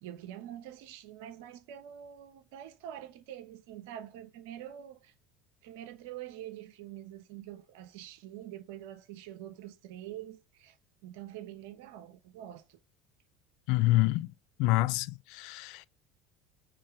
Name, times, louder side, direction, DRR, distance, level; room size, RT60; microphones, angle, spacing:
voice 1, 0.0-5.1 5.6-10.8 11.0-12.8, right 11 dB, 70° right, 1.0 m, -45 dB
voice 2, 13.7-14.3 14.6-15.9, left 18 dB, 65° left, 0.4 m, -27 dB
9.3 x 3.4 x 4.9 m
hypercardioid pair, 75°, 0 cm